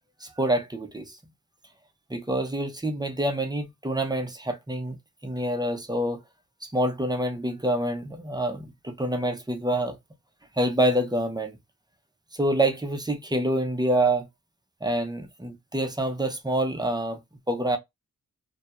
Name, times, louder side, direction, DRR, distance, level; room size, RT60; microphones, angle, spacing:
voice 1, 0.2-1.2 2.1-5.0 5.2-6.2 6.6-10.0 10.6-11.6 12.3-14.3 14.8-17.2 17.5-17.8, right 1 dB, 10° right, 0.5 m, -26 dB
2.2 x 2.2 x 2.8 m
wide cardioid pair, 75°, 37 cm